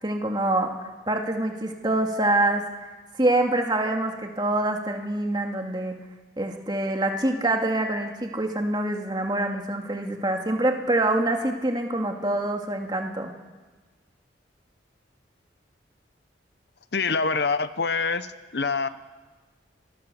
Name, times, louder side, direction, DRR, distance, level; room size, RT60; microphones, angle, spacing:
voice 1, 0.0-6.0 6.4-13.3, right 1 dB, 25° right, 3 dB, 2.2 m, -25 dB
voice 2, 16.9-18.3 18.5-18.9, left 4 dB, 60° left, 13 dB, 0.9 m, -25 dB
27.5 x 20.0 x 7.0 m, 1.3 s
head